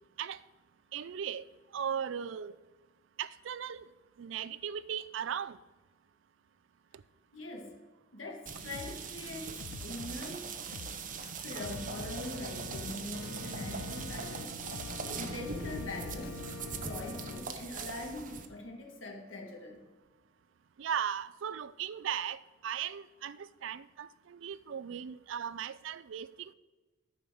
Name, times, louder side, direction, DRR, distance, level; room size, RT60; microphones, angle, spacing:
voice 1, 0.9-1.4 1.7-2.5 3.2-3.9 4.2-5.6 20.8-26.5, right 8 dB, 65° right, 0.4 m, -37 dB
voice 2, 7.3-7.8 8.1-10.5 11.4-14.6 15.1-16.4 16.8-19.9, left 1 dB, 70° left, 1.8 m, -43 dB
sound 1, 8.5-18.5, right 5 dB, 40° right, 0.8 m, -41 dB
sound 2, 8.7-16.5, left 6 dB, 50° left, 0.3 m, -47 dB
Organ, 11.6-17.4, left 3 dB, 85° left, 0.9 m, -44 dB
12.0 x 5.1 x 6.2 m
head